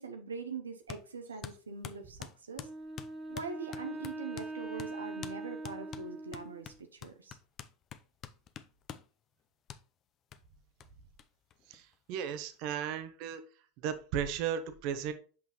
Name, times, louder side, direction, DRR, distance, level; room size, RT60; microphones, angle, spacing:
voice 1, 0.0-2.7 3.3-7.4, right 4 dB, 85° right, 0.7 m, -43 dB
sound 1, 0.9-1.1 1.4-4.5 4.8-4.9 5.2-5.4 5.6-9.1 9.7-9.8 10.3-10.4 10.8-10.9 11.2-11.3 11.5-12.2, left 9 dB, 35° left, 0.5 m, -46 dB
Wind instrument woodwind instrument, 2.6-6.8, right 2 dB, 15° right, 1.8 m, -42 dB
voice 2, 11.7-13.4 13.8-15.1, right 8 dB, 55° right, 0.8 m, -35 dB
6.1 x 5.5 x 3.0 m
figure-of-eight pair, 85°, 0 cm